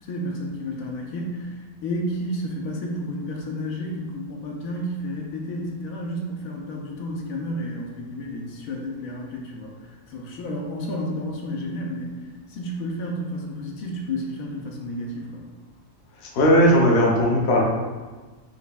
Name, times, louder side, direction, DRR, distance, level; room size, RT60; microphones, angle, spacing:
voice 1, 0.0-15.5, equal, 85° left, -1 dB, 1.0 m, -31 dB
voice 2, 16.2-17.6, equal, 55° left, -2 dB, 0.9 m, -17 dB
4.1 x 3.1 x 2.2 m, 1.3 s
omnidirectional pair, 1.4 m